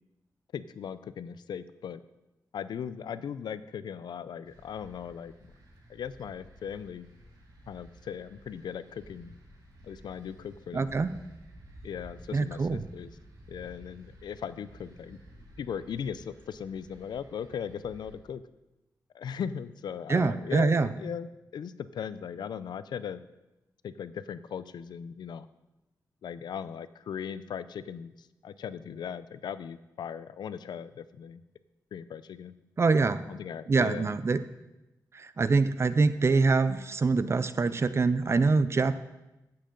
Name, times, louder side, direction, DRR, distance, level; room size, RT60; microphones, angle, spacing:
voice 1, 0.5-2.0 2.5-5.3 5.9-7.1 7.7-9.4 9.8-10.9 11.8-13.1 13.5-15.2 15.6-18.4 19.1-23.2 23.8-25.5 26.2-31.4 31.9-32.5 33.3-34.1, left 8 dB, 85° left, 15 dB, 0.5 m, -38 dB
sound 1, 4.4-18.1, right 1 dB, 65° right, 3.1 m, -53 dB
voice 2, 10.7-11.1 12.3-12.8 20.1-20.9 32.8-33.2 33.7-34.4 35.1-39.0, right 4 dB, 40° right, 13 dB, 0.6 m, -25 dB
15.0 x 7.6 x 3.8 m, 0.97 s
wide cardioid pair, 100°, 7 cm